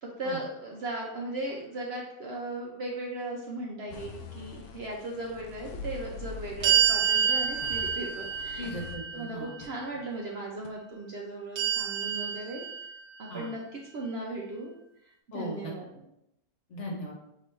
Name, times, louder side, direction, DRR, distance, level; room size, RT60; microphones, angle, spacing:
voice 1, 0.0-8.7 9.1-12.7 13.2-14.7 15.3-15.9, right 2 dB, 60° right, -1 dB, 0.7 m, -37 dB
sound 1, 3.9-9.7 10.1-10.2 10.6-10.7, left 4 dB, 90° left, 1.1 m, -43 dB
sound 2, 6.6-9.8 11.6-13.3, right 8 dB, 80° right, 1.2 m, -28 dB
voice 2, 8.6-9.5 13.3-13.5 15.3-15.7 16.7-17.1, equal, 55° left, -1 dB, 1.2 m, -37 dB
5.6 x 3.0 x 3.2 m, 0.82 s
omnidirectional pair, 1.5 m